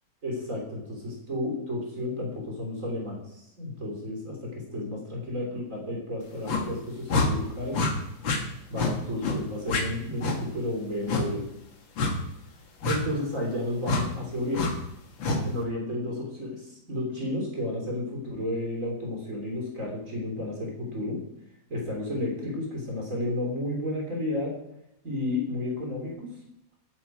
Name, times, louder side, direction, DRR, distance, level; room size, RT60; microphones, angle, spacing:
voice 1, 0.2-7.8 8.7-11.5 12.8-14.8 15.4-21.2 21.7-24.6 25.0-26.3, left 1 dB, 40° right, -1 dB, 3.7 m, -32 dB
sound 1, 6.5-6.7 7.1-7.3 7.7-7.9 8.2-8.4 8.8-8.9 9.2-9.4 9.7-9.8 10.2-10.4 11.1-11.3 12.0-12.2 12.8-13.0 13.8-14.0 14.5-14.7 15.2-15.4, left 3 dB, 75° left, 2.5 m, -26 dB
14.5 x 9.8 x 4.6 m, 0.79 s
omnidirectional pair, 2.1 m